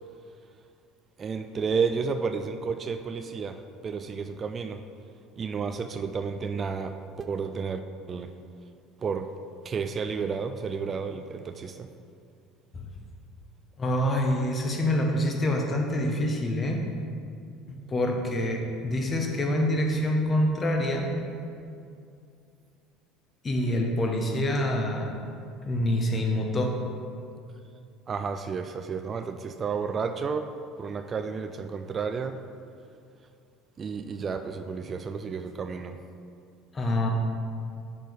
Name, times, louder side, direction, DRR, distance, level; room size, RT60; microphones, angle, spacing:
voice 1, 1.2-4.8 5.4-7.8 8.1-8.3 9.0-9.3 9.6-11.9 28.1-30.5 30.8-32.4 33.8-36.0, right 5 dB, 35° right, 8 dB, 0.3 m, -31 dB
voice 2, 13.8-16.8 17.9-21.1 23.4-25.1 25.7-26.8 36.7-37.1, left 1 dB, 30° left, 1 dB, 1.1 m, -26 dB
5.9 x 5.2 x 4.7 m, 2.4 s
hypercardioid pair, 80°, 0 cm